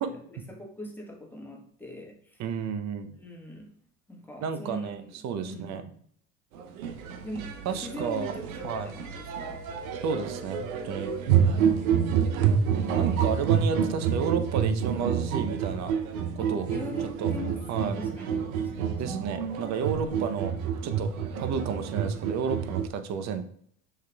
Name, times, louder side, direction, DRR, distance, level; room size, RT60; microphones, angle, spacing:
voice 1, 0.0-2.4 3.2-3.8 4.1-5.1 5.4-5.7 7.2-9.7 16.4-19.3, left 1 dB, 5° left, 0 dB, 1.2 m, -42 dB
voice 2, 2.4-3.2 4.4-5.9 7.7-8.3 8.6-8.9 10.0-11.1 13.0-15.9 16.4-16.7 17.2-17.3 17.7-18.0 19.0-20.5 20.8-21.1 21.4-23.4, right 6 dB, 40° right, 9 dB, 0.7 m, -31 dB
sound 1, 6.6-22.9, right 7 dB, 75° right, 0.7 m, -28 dB
6.5 x 3.2 x 2.3 m, 0.63 s
hypercardioid pair, 85°, 43 cm